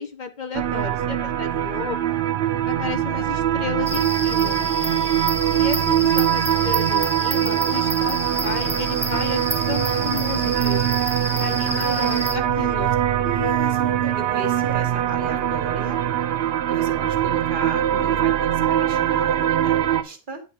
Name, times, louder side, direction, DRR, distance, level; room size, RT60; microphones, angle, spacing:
voice 1, 0.0-2.2 2.7-4.6 5.5-8.2 8.4-10.9 11.4-13.0 17.6-18.2, left 5 dB, 50° left, 8 dB, 0.8 m, -33 dB
sound 1, 0.5-20.0, right 11 dB, 80° right, 0.8 m, -22 dB
sound 2, 3.8-12.4, right 1 dB, 10° right, 0.7 m, -29 dB
voice 2, 11.7-12.1 12.5-12.9 13.2-16.0 16.7-20.4, right 3 dB, 55° right, 7 dB, 1.2 m, -34 dB
9.4 x 3.5 x 4.6 m, 0.33 s
omnidirectional pair, 1.0 m